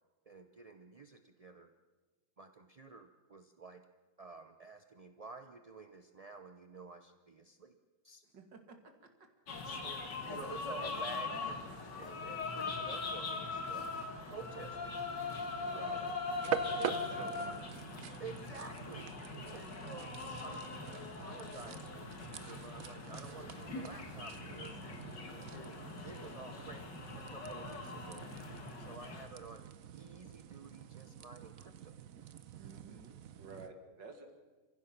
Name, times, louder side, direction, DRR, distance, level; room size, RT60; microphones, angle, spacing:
voice 1, 0.3-1.7 2.4-3.8 4.2-7.8 8.0-8.2 9.6-15.0 15.7-16.1 16.7-17.3 18.2-24.8 25.5-28.3 28.8-32.0, right 4 dB, 40° right, 7 dB, 0.5 m, -51 dB
voice 2, 8.3-8.8 15.6-16.0 16.4-17.6 18.0-18.2 32.6-33.1 33.4-34.3, right 4 dB, 80° right, 5 dB, 2.9 m, -52 dB
sound 1, 9.5-29.3, left 4 dB, 75° left, 2.7 m, -41 dB
sound 2, 16.3-33.7, right 9 dB, 60° right, 1.1 m, -46 dB
29.5 x 16.0 x 6.0 m, 1.3 s
omnidirectional pair, 1.9 m